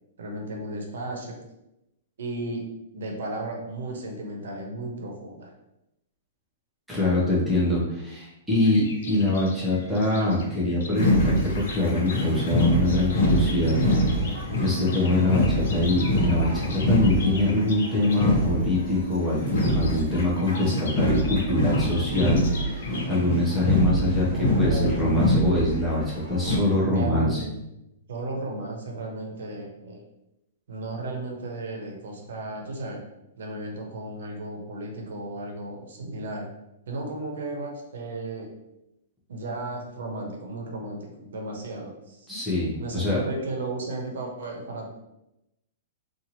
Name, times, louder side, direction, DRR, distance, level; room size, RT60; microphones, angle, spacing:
voice 1, 0.2-1.4 2.2-2.7 2.9-5.5 13.6-14.1 24.2-24.9 26.8-27.6 28.1-30.0 30.7-33.0 33.4-36.5 36.9-38.5 39.3-42.3 42.8-44.9, right 2 dB, 75° right, 1 dB, 0.8 m, -34 dB
voice 2, 6.9-13.7 14.6-27.4 42.3-43.2, left 2 dB, ahead, -7 dB, 0.6 m, -24 dB
sound 1, 8.6-18.3 19.4-24.0, left 3 dB, 60° left, 0.5 m, -41 dB
sound 2, 11.0-26.6, equal, 45° left, 1.2 m, -25 dB
2.8 x 2.5 x 2.8 m, 0.89 s
hypercardioid pair, 180°, 0 cm